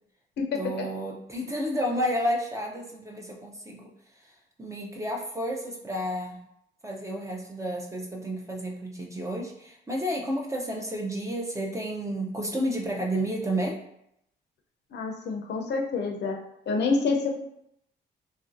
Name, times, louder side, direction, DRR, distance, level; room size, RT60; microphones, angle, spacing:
voice 1, 0.6-3.9 4.6-6.4 6.8-13.8, equal, 15° right, 0 dB, 0.5 m, -31 dB
voice 2, 14.9-16.4 16.7-17.3, left 4 dB, 60° left, 1 dB, 0.6 m, -27 dB
3.1 x 2.5 x 2.5 m, 0.76 s
cardioid pair, 90°, 20 cm